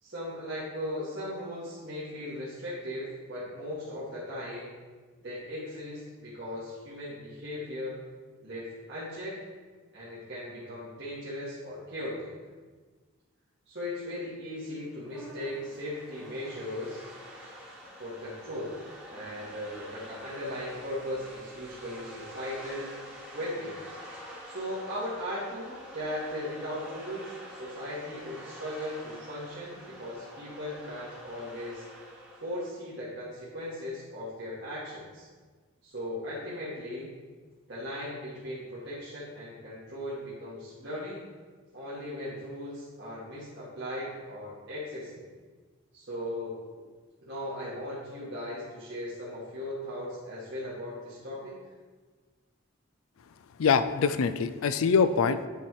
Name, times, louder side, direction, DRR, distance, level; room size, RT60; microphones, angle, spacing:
voice 1, 0.0-4.7 5.2-8.0 8.4-9.4 9.9-12.3 13.7-17.1 18.0-18.8 19.1-22.9 23.3-23.8 24.4-31.8 32.4-35.3 35.8-37.1 37.7-41.2 41.7-45.2 45.9-46.9 47.2-51.5, left 1 dB, 55° right, -10 dB, 1.7 m, -38 dB
sound 1, 14.8-32.7, equal, 5° right, 1.3 m, -47 dB
voice 2, 53.6-55.5, left 6 dB, 80° left, 12 dB, 0.4 m, -24 dB
9.0 x 4.4 x 4.7 m, 1.4 s
head